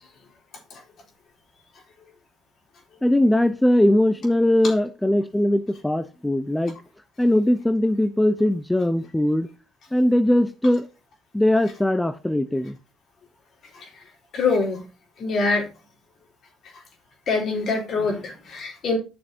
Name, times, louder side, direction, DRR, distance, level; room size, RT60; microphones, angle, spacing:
voice 1, 3.0-6.8 7.2-9.5 9.9-10.9 11.3-12.8, left 1 dB, 10° left, 0.8 m, -20 dB
voice 2, 14.3-14.8 15.2-15.7 16.7-16.8 17.3-19.0, left 4 dB, 55° left, 4.0 m, -24 dB
10.5 x 7.0 x 2.8 m
hypercardioid pair, 65°, 0 cm